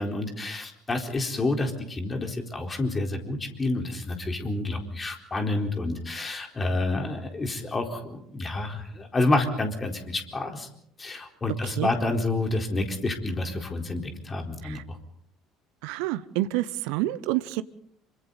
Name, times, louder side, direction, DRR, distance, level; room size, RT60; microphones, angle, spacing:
voice 1, 0.0-10.7 11.0-15.0, left 2 dB, 25° left, 3 dB, 4.2 m, -29 dB
voice 2, 15.8-17.6, right 16 dB, 65° right, 15 dB, 0.8 m, -28 dB
28.0 x 25.0 x 4.1 m, 0.70 s
figure-of-eight pair, 60°, 0 cm